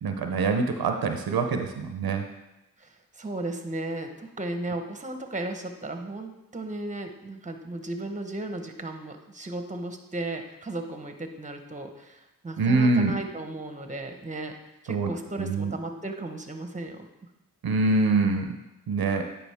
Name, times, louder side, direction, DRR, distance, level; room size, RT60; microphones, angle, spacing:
voice 1, 0.0-2.2 12.6-13.2 14.9-15.1 15.4-15.7 17.6-18.6 18.9-19.3, right 3 dB, 80° right, 5 dB, 0.7 m, -24 dB
voice 2, 2.8-14.6 14.8-17.1, right 2 dB, 20° right, 5 dB, 1.1 m, -35 dB
9.6 x 5.0 x 3.5 m, 0.95 s
cardioid pair, 45°, 36 cm